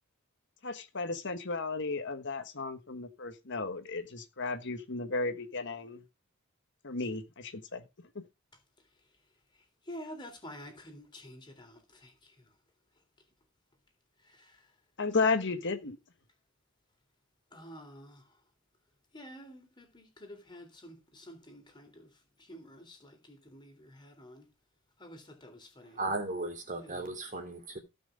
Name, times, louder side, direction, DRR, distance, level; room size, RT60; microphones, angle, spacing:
voice 1, 0.6-6.0 6.8-7.8 8.1-8.2 15.0-16.0, left 3 dB, 55° left, 1.4 m, -34 dB
voice 2, 9.9-12.4 14.3-14.6 17.5-18.2 19.1-22.1 22.4-24.5 25.0-26.0 26.8-27.1, equal, 20° left, 3.6 m, -49 dB
voice 3, 25.9-27.8, right 2 dB, 35° right, 3.2 m, -36 dB
16.5 x 6.1 x 5.1 m
head